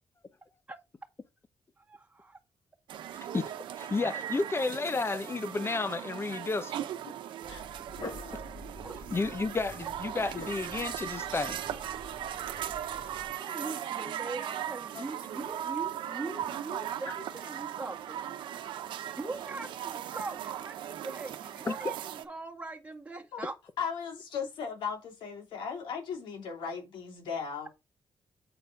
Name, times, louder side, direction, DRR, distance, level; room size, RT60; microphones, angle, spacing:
voice 1, 1.8-2.4 8.8-9.0 13.0-18.2 19.2-23.5, right 3 dB, 15° right, 1.8 m, -41 dB
sound 1, 2.9-22.2, right 10 dB, 85° right, 0.9 m, -38 dB
voice 2, 3.8-6.8 8.0-8.4 9.1-11.6 21.7-21.9, left 3 dB, 30° left, 1.0 m, -32 dB
Dog, 7.4-13.3, left 2 dB, 70° left, 4.8 m, -47 dB
voice 3, 8.0-8.4 14.9-15.1 15.4-15.5 23.3-23.4 23.8-27.7, left 6 dB, 85° left, 2.9 m, -37 dB
7.7 x 4.5 x 5.2 m
cardioid pair, 70°, 8 cm